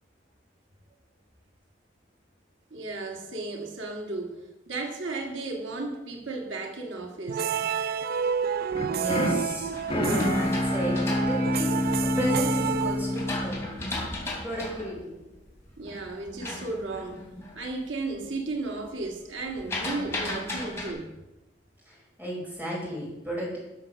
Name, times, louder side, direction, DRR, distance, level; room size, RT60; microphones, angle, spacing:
voice 1, 2.7-7.6 15.8-17.2 17.6-21.1, right 3 dB, 90° right, 2 dB, 1.6 m, -34 dB
sound 1, 7.3-13.6, right 7 dB, 55° right, 0.3 m, -30 dB
sound 2, 8.5-12.3 12.8-17.6 18.0-18.4 18.7-20.9, left 2 dB, 15° left, 2.9 m, -36 dB
sound 3, 8.7-14.8, left 1 dB, 30° left, 1.3 m, -28 dB
voice 2, 8.9-10.9 11.2-11.8 12.2-13.8 14.4-15.1 21.9-23.6, equal, 10° right, -4 dB, 4.8 m, -33 dB
13.0 x 6.3 x 6.1 m, 1.0 s
head